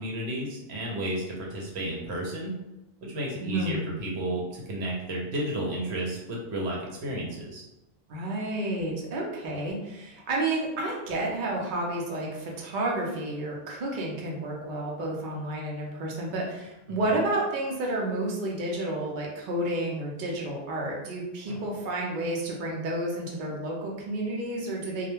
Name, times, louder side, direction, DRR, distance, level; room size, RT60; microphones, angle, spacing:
voice 1, 0.0-2.5 3.0-7.6 16.9-17.0 21.5-21.6, right 1 dB, 75° right, -2 dB, 0.9 m, -32 dB
voice 2, 3.4-3.9 8.1-25.1, right 1 dB, 55° right, -2 dB, 0.7 m, -31 dB
2.3 x 2.1 x 3.0 m, 0.94 s
omnidirectional pair, 1.1 m